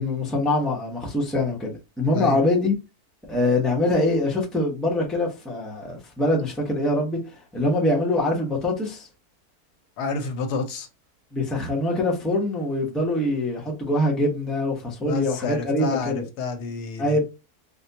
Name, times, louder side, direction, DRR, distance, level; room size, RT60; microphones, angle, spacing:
voice 1, 0.0-2.7 3.3-7.2 7.5-9.1 11.3-16.2 17.0-17.2, left 1 dB, ahead, 0.6 m, -24 dB
voice 2, 10.0-10.9 15.0-17.2, left 4 dB, 90° left, 1.3 m, -29 dB
4.1 x 2.2 x 2.7 m
omnidirectional pair, 1.7 m